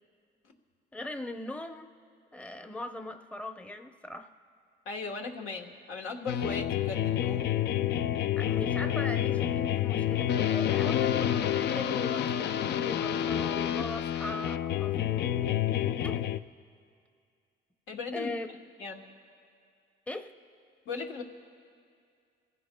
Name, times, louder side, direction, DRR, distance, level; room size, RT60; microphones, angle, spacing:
voice 1, 0.9-1.9 2.3-4.3 8.4-16.3 18.1-18.5 20.1-20.3, left 1 dB, 5° left, 6 dB, 0.7 m, -40 dB
voice 2, 4.8-7.5 17.9-18.3 18.8-19.0 20.8-21.2, left 4 dB, 85° left, 2 dB, 1.3 m, -37 dB
sound 1, 6.3-16.4, left 10 dB, 60° left, 0.4 m, -28 dB
27.5 x 15.5 x 2.2 m, 2.3 s
cardioid pair, 90°, 20 cm